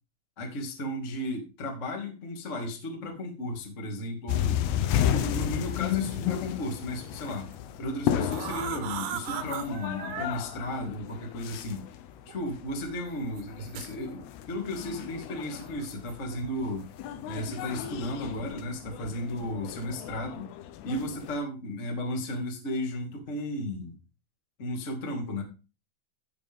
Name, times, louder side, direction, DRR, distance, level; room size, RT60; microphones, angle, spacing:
voice 1, 0.4-4.6 4.9-7.5 7.8-11.8 12.2-16.9 17.2-20.5 20.8-24.0 24.6-25.4, left 1 dB, 50° left, 2 dB, 0.8 m, -34 dB
sound 1, 4.3-21.4, left 11 dB, 85° left, 2.3 m, -33 dB
sound 2, 7.3-7.6 8.1-10.3 11.4-11.5 12.3-12.4 13.3-13.9 15.8-16.5 16.8-17.1 17.7-17.9 18.3-18.7, right 10 dB, 75° right, 2.9 m, -38 dB
15.0 x 5.3 x 3.6 m, 0.33 s
omnidirectional pair, 5.6 m